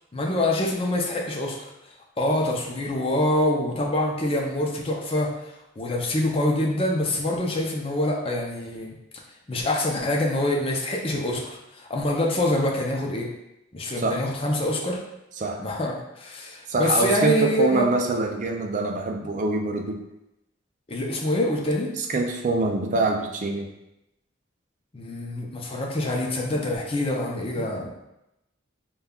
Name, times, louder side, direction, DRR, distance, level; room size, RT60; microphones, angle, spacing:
voice 1, 0.1-1.7 2.2-5.3 5.8-8.9 9.5-13.3 13.7-15.0 15.6-17.9 20.9-21.9 24.9-27.9, left 1 dB, 30° left, -1 dB, 0.5 m, -25 dB
voice 2, 16.7-20.0 22.1-23.7 26.5-26.7 27.6-27.9, right 3 dB, 40° right, 3 dB, 0.4 m, -25 dB
5.2 x 2.3 x 2.3 m, 0.88 s
head